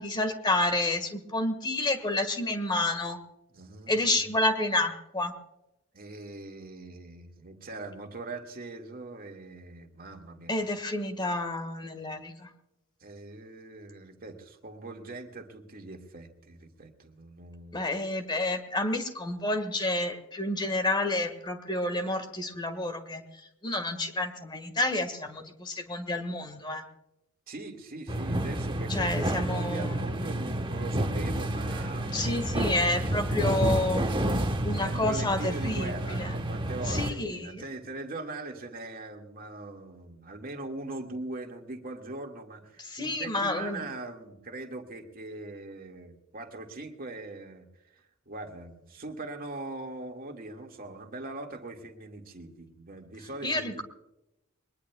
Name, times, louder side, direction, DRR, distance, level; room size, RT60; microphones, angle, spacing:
voice 1, 0.0-3.2 3.9-5.3 10.5-12.5 17.7-23.2 23.6-26.8 28.9-30.1 32.1-34.0 34.6-36.3 36.9-37.6 42.9-43.8 53.4-53.8, left 2 dB, 20° left, 8 dB, 1.7 m, -29 dB
voice 2, 3.5-4.3 5.9-10.5 13.0-17.9 27.5-32.4 34.8-47.6 48.3-53.8, right 2 dB, 45° right, 2 dB, 2.0 m, -41 dB
sound 1, 28.1-37.1, right 1 dB, 25° right, 1.2 m, -30 dB
22.0 x 20.0 x 2.3 m, 0.91 s
head